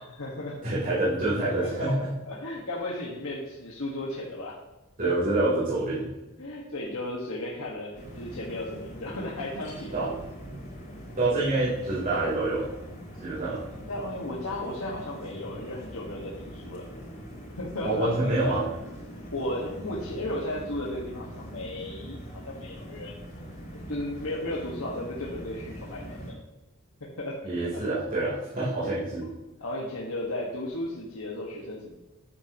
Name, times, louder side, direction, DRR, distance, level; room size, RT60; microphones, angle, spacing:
voice 1, 0.0-0.6 1.6-4.6 6.4-10.1 13.8-16.8 17.6-18.5 19.3-22.2 22.4-23.2 23.9-26.4 27.0-27.4 27.7-27.8 28.8-29.0 29.2-29.3 29.6-31.9, left 1 dB, 70° left, -3 dB, 1.8 m, -35 dB
voice 2, 0.6-2.1 5.0-6.1 9.9-10.1 11.2-12.7 13.2-13.6 17.8-18.6 27.4-29.3, right 2 dB, 40° right, -10 dB, 3.7 m, -26 dB
sound 1, 7.9-26.3, equal, 35° left, 4.0 m, -42 dB
13.0 x 9.8 x 3.1 m, 1.0 s
head